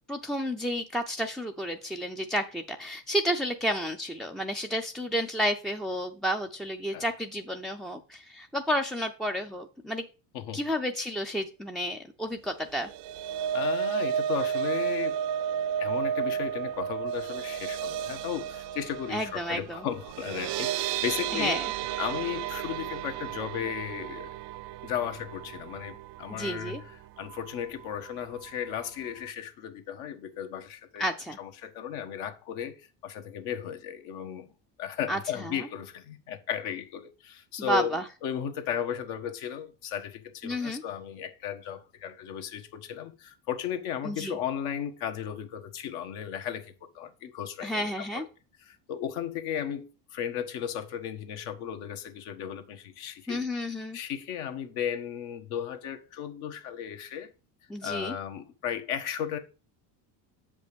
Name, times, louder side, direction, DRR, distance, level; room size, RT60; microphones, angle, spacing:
voice 1, 0.1-10.1 10.5-12.9 19.1-19.9 21.3-21.7 26.3-26.8 31.0-31.4 35.1-35.7 37.6-38.1 40.4-40.8 44.0-44.4 47.6-48.3 53.3-54.0 57.7-58.2, equal, ahead, 0.3 m, -31 dB
sound 1, 12.7-26.9 27.3-27.5 27.8-27.9, right 9 dB, 60° right, 0.6 m, -33 dB
voice 2, 13.5-15.1 15.8-21.6 22.0-24.3 24.8-26.8 27.2-31.0 31.4-34.5 34.8-48.2 48.7-53.4 53.9-57.3 57.8-59.4, left 9 dB, 75° left, 1.5 m, -35 dB
7.4 x 5.3 x 5.1 m
supercardioid pair, 100°, 49 cm